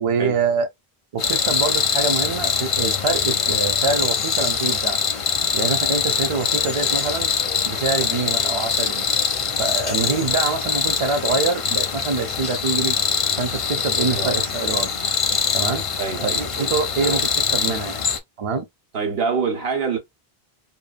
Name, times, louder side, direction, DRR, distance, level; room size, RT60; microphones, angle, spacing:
voice 1, 0.0-0.7 1.1-5.0 5.5-7.3 7.6-9.1 9.6-13.0 13.4-14.9 15.5-15.8 16.2-18.0 18.4-18.6, right 4 dB, 45° right, 0.5 m, -25 dB
sound 1, 1.2-18.2, left 6 dB, 45° left, 0.4 m, -23 dB
voice 2, 16.0-16.7 17.0-17.2 18.9-20.0, right 5 dB, 70° right, 1.2 m, -25 dB
2.7 x 2.3 x 2.5 m
omnidirectional pair, 1.0 m